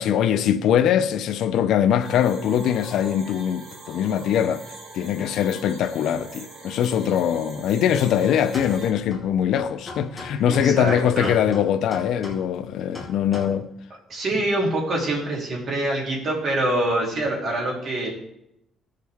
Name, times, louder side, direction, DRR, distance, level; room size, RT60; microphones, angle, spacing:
voice 1, 0.0-4.6 4.9-13.7, left 9 dB, 75° left, 0.6 m, -22 dB
sound 1, 2.0-8.9, right 3 dB, 80° right, 4.0 m, -42 dB
sound 2, 8.5-13.4, left 2 dB, ahead, 2.3 m, -40 dB
voice 2, 10.5-11.3 14.1-18.1, right 1 dB, 50° right, 2.9 m, -25 dB
17.0 x 6.6 x 3.5 m
cardioid pair, 155°, 0 cm